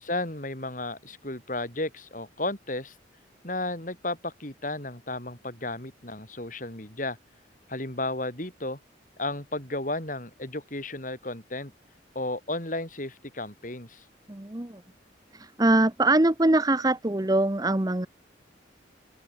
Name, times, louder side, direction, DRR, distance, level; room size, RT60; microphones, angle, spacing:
voice 1, 0.0-2.9 3.4-7.2 7.7-8.8 9.2-11.7 12.2-14.0, left 2 dB, 45° left, 3.8 m, -33 dB
voice 2, 14.3-14.8 15.3-18.1, right 2 dB, 20° right, 0.8 m, -23 dB
open air
head